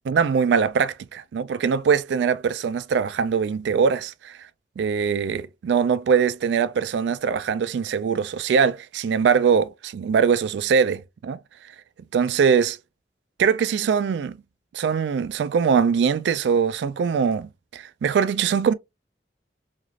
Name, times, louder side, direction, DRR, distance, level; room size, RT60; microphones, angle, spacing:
voice 1, 0.1-4.4 4.8-11.4 12.1-12.8 13.4-14.4 14.7-18.7, right 6 dB, 85° right, 0.3 m, -22 dB
3.1 x 2.4 x 2.4 m
head